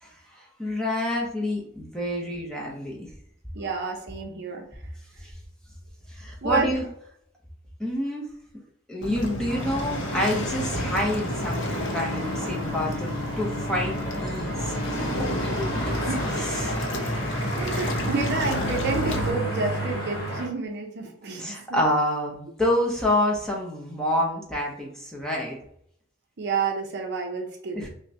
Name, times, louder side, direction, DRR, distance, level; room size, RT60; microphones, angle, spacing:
voice 1, 0.0-3.0 5.2-5.3 6.1-6.8 7.8-8.3 8.9-11.7 11.9-15.8 16.3-16.8 21.4-25.6 27.7-27.9, left 1 dB, 5° left, -3 dB, 0.7 m, -28 dB
voice 2, 3.5-4.6 6.4-6.8 15.9-16.3 17.6-21.8 26.4-27.9, right 4 dB, 50° right, 2 dB, 0.6 m, -29 dB
Waves surf, 9.0-19.3, left 1 dB, 55° left, 0.6 m, -31 dB
sound 1, 9.5-20.5, right 1 dB, 40° left, 1.1 m, -32 dB
5.5 x 2.2 x 2.7 m, 0.69 s
head